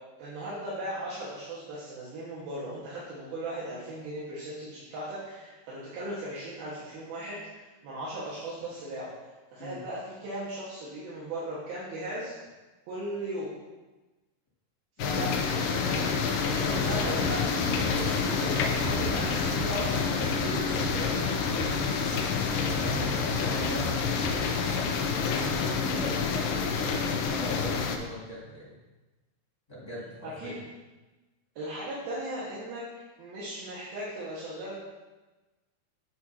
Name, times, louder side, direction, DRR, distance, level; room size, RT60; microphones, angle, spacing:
voice 1, 0.2-9.1 9.5-12.3 12.9-13.5 15.0-17.5 17.9-21.2 30.2-30.6 31.6-32.8 33.2-34.7, right 1 dB, 70° right, -9 dB, 3.4 m, -37 dB
sound 1, 15.0-28.0, left 5 dB, 90° left, 1.8 m, -28 dB
sound 2, 17.2-24.8, left 1 dB, 50° right, 3.0 m, -37 dB
voice 2, 22.2-24.7 25.0-28.8 29.7-30.6, left 1 dB, 20° left, -9 dB, 0.7 m, -41 dB
8.8 x 7.5 x 2.8 m, 1.2 s
omnidirectional pair, 4.6 m